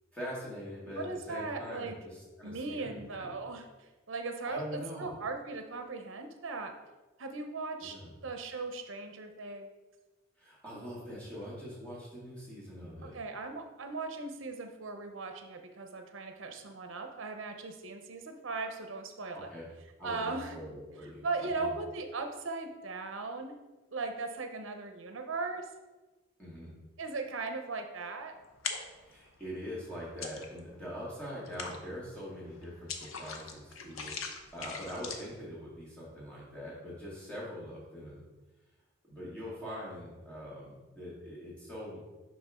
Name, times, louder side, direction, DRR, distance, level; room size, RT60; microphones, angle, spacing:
voice 1, 0.1-3.4 4.5-5.2 7.8-8.1 10.4-13.2 19.3-19.7 20.0-21.3 21.6-21.7 26.4-26.7 29.0-34.2 34.5-38.3 39.1-42.0, equal, 5° left, -7 dB, 1.9 m, -43 dB
voice 2, 0.9-2.0 2.4-6.7 7.2-8.0 8.2-9.7 13.0-19.5 20.0-20.5 21.2-23.5 23.9-25.7 27.0-28.4, right 3 dB, 70° right, 6 dB, 0.7 m, -38 dB
sound 1, 28.4-29.1 29.6-30.8 31.1-35.4, left 5 dB, 80° left, 0.7 m, -41 dB
5.6 x 5.2 x 3.6 m, 1.2 s
head